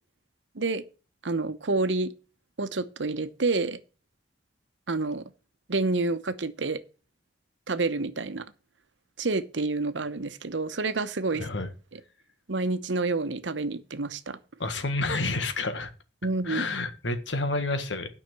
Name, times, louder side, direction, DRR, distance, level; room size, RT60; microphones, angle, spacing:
voice 1, 1.2-2.1 2.6-3.8 4.9-5.2 5.7-6.8 7.7-8.4 9.2-11.5 11.9-12.0 12.5-14.4 16.2-16.6, right 3 dB, 90° right, 1.0 m, -28 dB
voice 2, 11.3-11.7 14.6-15.9 16.4-18.1, left 2 dB, 90° left, 1.6 m, -29 dB
9.6 x 5.8 x 7.5 m
head